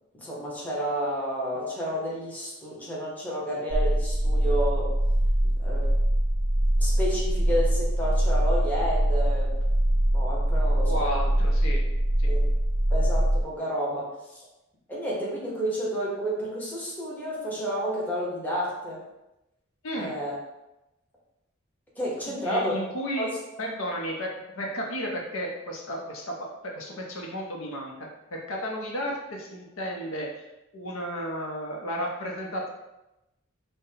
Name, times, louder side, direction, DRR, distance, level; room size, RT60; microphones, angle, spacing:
voice 1, 0.1-4.9 5.6-5.9 6.8-9.5 10.1-11.1 12.3-12.5 12.9-14.4 14.9-19.0 19.9-20.3 22.0-22.8 23.2-23.3, equal, 10° left, -6 dB, 0.9 m, -30 dB
sound 1, 3.7-13.4, right 1 dB, 25° right, 0.4 m, -23 dB
voice 2, 10.8-11.8 12.2-12.3 19.8-20.1 22.3-23.3 23.6-26.3 26.6-27.9 28.3-30.4 30.7-32.7, equal, 85° left, -1 dB, 0.7 m, -33 dB
5.2 x 2.2 x 2.8 m, 0.95 s
head